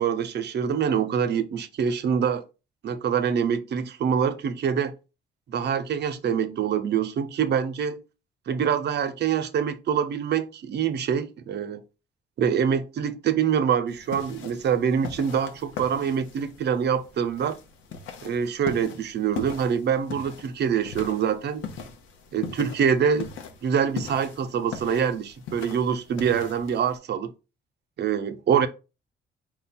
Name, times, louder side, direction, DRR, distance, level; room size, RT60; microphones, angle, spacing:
voice 1, 0.0-2.4 2.8-4.9 5.5-8.0 8.5-11.8 12.4-17.6 18.2-21.7 22.3-23.3 23.6-27.3 28.0-28.7, right 7 dB, 60° right, 0.6 m, -25 dB
sound 1, 13.9-27.0, left 6 dB, 90° left, 0.9 m, -40 dB
4.8 x 2.2 x 4.2 m
cardioid pair, 90°, 20 cm